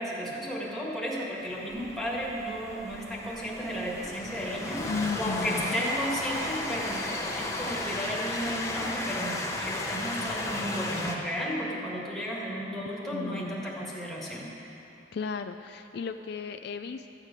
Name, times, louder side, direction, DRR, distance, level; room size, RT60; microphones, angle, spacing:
voice 1, 0.0-4.9 5.1-14.5, equal, ahead, -5 dB, 1.8 m, -33 dB
Train, 1.4-11.1, left 2 dB, 15° left, 1.0 m, -34 dB
sound 1, 1.7-7.9, equal, 50° right, 2.5 m, -53 dB
voice 2, 4.8-5.8 12.9-13.6 15.1-17.1, left 5 dB, 60° left, 8 dB, 0.4 m, -35 dB
13.5 x 4.9 x 8.9 m, 2.9 s
head